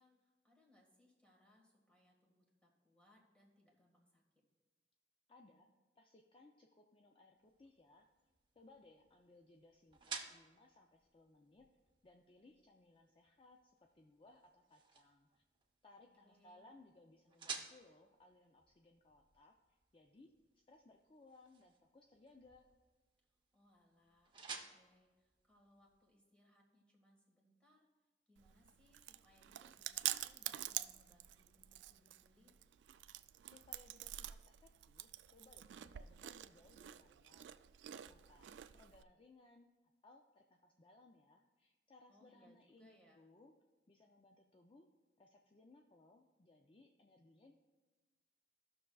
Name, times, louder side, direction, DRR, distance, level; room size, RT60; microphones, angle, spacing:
voice 1, 0.0-4.2 16.2-16.7 23.5-27.9 28.3-32.6 42.1-43.2, left 1 dB, 5° left, -2 dB, 1.7 m, -71 dB
voice 2, 5.3-5.7 6.0-8.1 8.6-11.7 12.0-15.4 15.8-22.7 33.4-37.5 37.9-39.7 40.0-43.5 43.9-44.9 45.2-47.5, left 2 dB, 30° left, 2 dB, 0.5 m, -65 dB
sound 1, 7.4-26.2, right 5 dB, 30° right, 0.8 m, -55 dB
Chewing mastication, 28.4-39.0, right 13 dB, 85° right, 0.3 m, -47 dB
15.5 x 6.2 x 2.3 m, 1.3 s
head